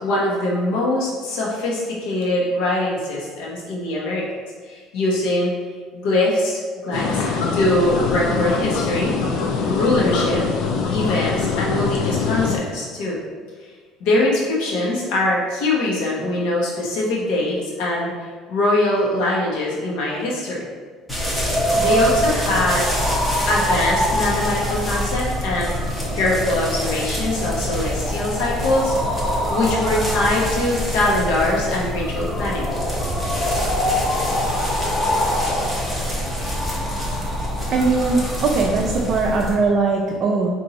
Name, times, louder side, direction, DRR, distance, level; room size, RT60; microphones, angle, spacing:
voice 1, 0.0-4.2 4.7-5.5 5.9-7.2 7.5-9.1 9.6-10.4 10.9-13.2 14.0-20.7 21.7-22.9 23.4-25.7 26.1-29.0 29.5-32.7, left 1 dB, 80° left, -4 dB, 1.1 m, -22 dB
sound 1, 6.9-12.6, left 5 dB, 60° left, 0.5 m, -23 dB
sound 2, 21.1-39.6, equal, 10° left, 0.8 m, -23 dB
voice 2, 37.7-40.5, right 4 dB, 40° right, -2 dB, 0.4 m, -20 dB
4.3 x 2.6 x 3.9 m, 1.6 s
cardioid pair, 155°, 0 cm